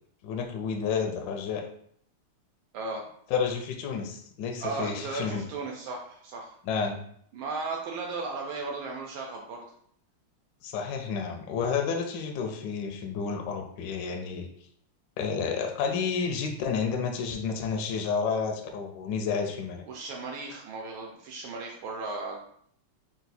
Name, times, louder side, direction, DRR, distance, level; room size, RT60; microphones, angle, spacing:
voice 1, 0.2-1.6 3.3-5.4 6.7-7.0 10.6-14.5 15.2-19.8, left 6 dB, 75° left, 3 dB, 1.0 m, -30 dB
voice 2, 4.6-6.5 7.3-9.6 19.9-22.4, right 3 dB, 75° right, 0 dB, 1.4 m, -36 dB
3.9 x 2.4 x 4.0 m, 0.65 s
omnidirectional pair, 2.4 m